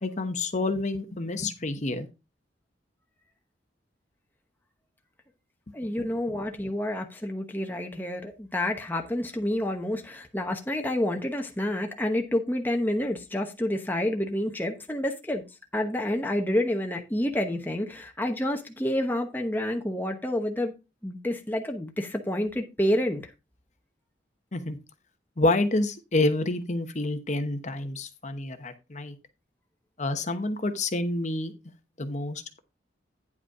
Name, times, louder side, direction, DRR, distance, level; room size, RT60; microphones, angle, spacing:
voice 1, 0.0-2.1 6.0-6.1 24.5-24.8 25.4-29.1 30.0-31.5 32.0-32.6, left 2 dB, 40° left, 1.0 m, -28 dB
voice 2, 5.7-15.4 15.7-20.7 21.0-23.3, left 1 dB, 10° left, 1.0 m, -29 dB
9.7 x 5.0 x 4.8 m
head